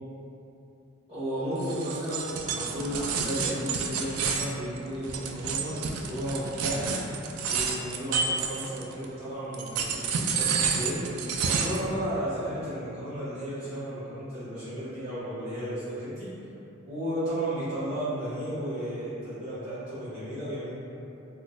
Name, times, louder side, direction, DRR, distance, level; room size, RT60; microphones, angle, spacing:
voice 1, 1.1-7.0 7.5-11.0 11.4-16.3 16.8-20.7, equal, 25° right, -16 dB, 1.3 m, -33 dB
sound 1, 1.6-9.0 9.5-11.9, right 5 dB, 85° right, 0.3 m, -30 dB
3.8 x 2.3 x 2.5 m, 2.9 s
head